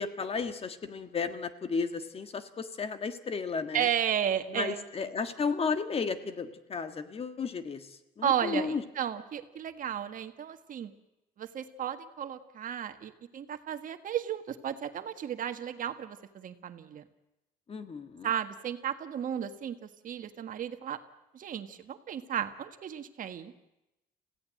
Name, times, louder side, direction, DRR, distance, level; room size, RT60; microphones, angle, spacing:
voice 1, 0.0-3.9 4.5-8.8 17.7-18.3, left 5 dB, 35° left, 9 dB, 1.7 m, -33 dB
voice 2, 3.7-4.8 8.2-10.9 11.4-17.0 18.2-21.0 21.3-23.5, right 9 dB, 50° right, 8 dB, 1.6 m, -34 dB
26.5 x 16.5 x 7.7 m, 0.93 s
cardioid pair, 110°, 17 cm